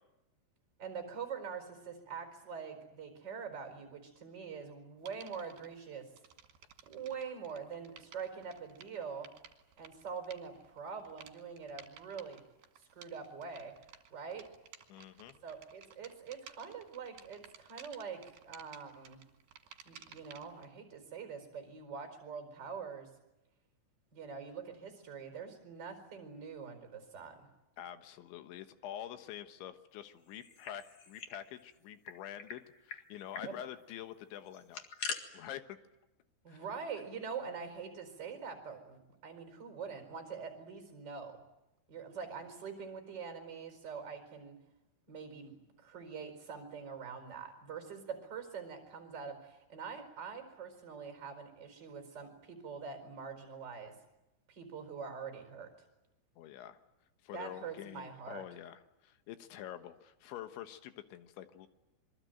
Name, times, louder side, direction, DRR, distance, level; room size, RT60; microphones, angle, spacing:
voice 1, 0.8-6.1 6.8-9.3 9.8-12.4 12.8-13.8 14.1-14.5 15.4-19.2 19.8-23.1 24.1-27.5 33.4-33.6 36.4-41.4 41.9-44.5 45.1-53.9 54.5-55.7 57.3-58.4, right 6 dB, 25° right, 6 dB, 4.6 m, -44 dB
sound 1, 5.1-5.7 6.1-20.7, right 8 dB, 60° right, 3.7 m, -56 dB
voice 2, 14.9-15.4 27.8-34.9 35.3-35.8 36.5-36.6 56.4-56.8 57.2-61.7, left 11 dB, 85° left, 9 dB, 3.7 m, -47 dB
sound 2, 30.3-31.4 31.7-31.8 32.0-32.6 32.9-33.0 33.3-33.5 34.5-35.2, left 6 dB, 50° left, 2.2 m, -42 dB
27.0 x 23.0 x 9.2 m, 0.95 s
omnidirectional pair, 5.2 m